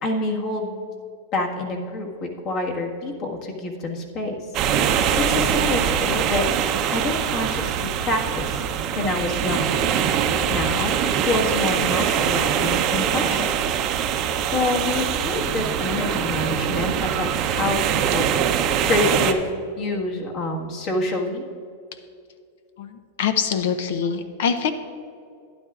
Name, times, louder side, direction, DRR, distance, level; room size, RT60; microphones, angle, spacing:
voice 1, 0.0-0.9 1.3-4.4 4.8-6.5 6.9-8.6 8.9-9.9 10.4-11.0 11.2-13.6 14.3-18.3 18.9-19.5 19.8-21.4, left 2 dB, 45° left, 0 dB, 1.6 m, -27 dB
sound 1, 4.5-19.3, right 8 dB, 40° right, 0.6 m, -23 dB
voice 2, 22.8-24.7, left 7 dB, 70° left, 9 dB, 0.6 m, -24 dB
12.0 x 10.5 x 2.5 m, 2.4 s
hypercardioid pair, 125°, 0 cm